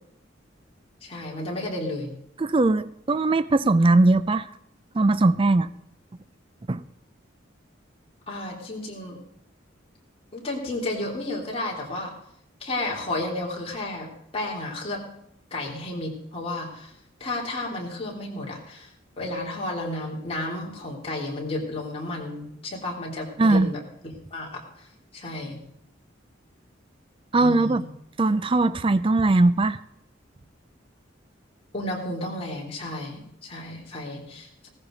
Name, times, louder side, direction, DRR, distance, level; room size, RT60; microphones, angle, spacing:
voice 1, 1.0-2.1 8.3-9.2 10.3-12.2 12.6-15.0 15.5-16.9 17.2-18.9 19.2-23.8 24.3-24.6 25.1-25.6 27.4-27.9 31.7-34.7, left 2 dB, 30° left, -3 dB, 3.6 m, -32 dB
voice 2, 2.4-4.5 4.9-5.7 6.7-6.8 23.4-23.7 27.3-27.8 28.2-29.8, right 2 dB, 25° right, 13 dB, 0.4 m, -20 dB
16.5 x 14.5 x 4.0 m, 0.73 s
head